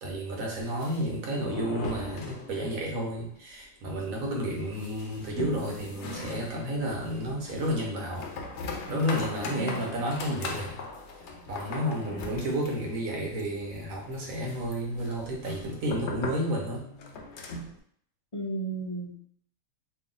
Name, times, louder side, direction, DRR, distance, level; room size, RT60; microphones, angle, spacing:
voice 1, 0.0-8.3 8.9-10.8 11.5-16.8, equal, 85° right, -1 dB, 1.3 m, -31 dB
sound 1, 0.6-2.9 3.2-3.3 3.6-3.7 4.2-17.8, left 3 dB, 65° left, 0.8 m, -40 dB
voice 2, 9.6-10.0 12.1-12.4 18.3-19.3, right 2 dB, 35° left, -4 dB, 0.5 m, -35 dB
3.1 x 2.6 x 3.8 m, 0.62 s
omnidirectional pair, 1.4 m